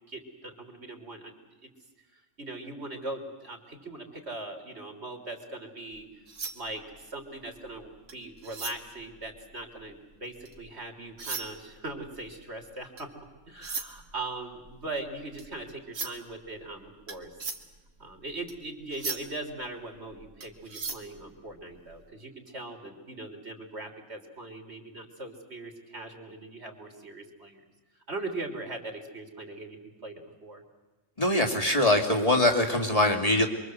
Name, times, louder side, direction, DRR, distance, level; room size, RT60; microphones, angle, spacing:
voice 1, 0.1-1.3 1.6-1.7 2.1-6.1 6.5-13.1 13.5-17.3 18.0-27.6 28.1-30.6, right 2 dB, 60° right, 4 dB, 3.8 m, -40 dB
sound 1, 5.9-10.7 11.1-22.0, right 4 dB, 80° right, 2.3 m, -40 dB
voice 2, 31.2-33.5, left 1 dB, 30° left, 3 dB, 2.9 m, -23 dB
27.5 x 23.5 x 8.0 m, 1.2 s
omnidirectional pair, 1.3 m